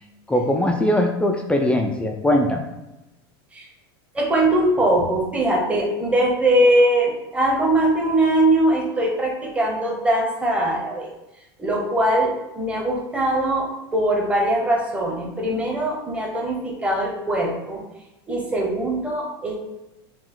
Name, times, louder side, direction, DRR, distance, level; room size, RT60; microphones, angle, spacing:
voice 1, 0.3-2.6, left 1 dB, 10° left, 2 dB, 0.3 m, -20 dB
voice 2, 4.1-11.1 11.6-17.8 18.3-19.5, right 1 dB, 10° right, -1 dB, 0.9 m, -21 dB
4.0 x 2.3 x 3.7 m, 0.97 s
supercardioid pair, 130°, 13 cm